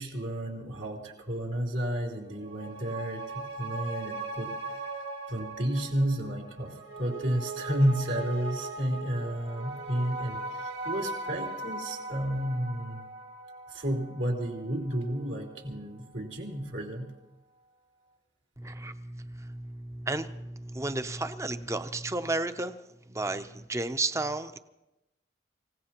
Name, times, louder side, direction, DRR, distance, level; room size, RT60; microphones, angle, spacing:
voice 1, 0.0-4.8 5.3-13.0 13.7-17.1, right 1 dB, 80° right, -1 dB, 3.4 m, -32 dB
sound 1, 2.3-15.1 15.5-15.6, right 2 dB, 60° right, 2.1 m, -39 dB
voice 2, 18.6-22.7 23.1-24.6, right 2 dB, 15° right, 10 dB, 0.5 m, -33 dB
27.0 x 17.0 x 2.9 m, 0.95 s
head